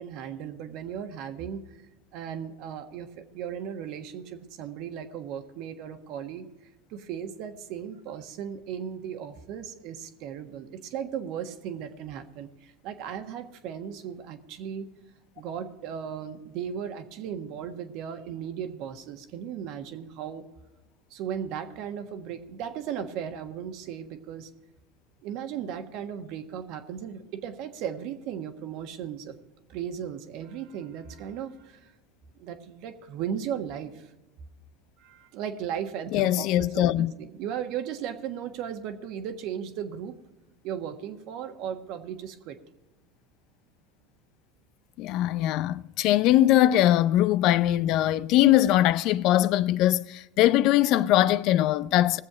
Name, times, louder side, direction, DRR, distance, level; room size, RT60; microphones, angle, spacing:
voice 1, 0.0-1.6 2.1-6.4 6.9-14.9 15.4-20.4 21.1-24.5 25.2-29.3 29.7-31.9 32.3-34.1 35.0-40.2 40.6-42.6, right 8 dB, 60° right, 1.4 m, -36 dB
voice 2, 36.1-37.1 45.0-52.2, left 13 dB, 55° left, 0.5 m, -21 dB
19.5 x 7.5 x 4.9 m
supercardioid pair, 110°, 0 cm